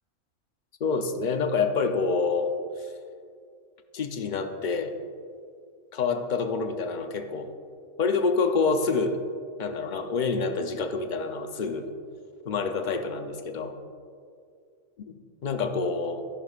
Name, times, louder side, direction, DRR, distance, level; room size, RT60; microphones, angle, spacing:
voice 1, 0.8-2.5 2.8-2.9 3.9-4.9 5.9-7.5 8.0-9.2 9.6-11.9 12.5-13.7 15.4-16.2, left 4 dB, 45° left, 6 dB, 0.7 m, -27 dB
14.0 x 10.5 x 2.5 m, 2.2 s
omnidirectional pair, 1.4 m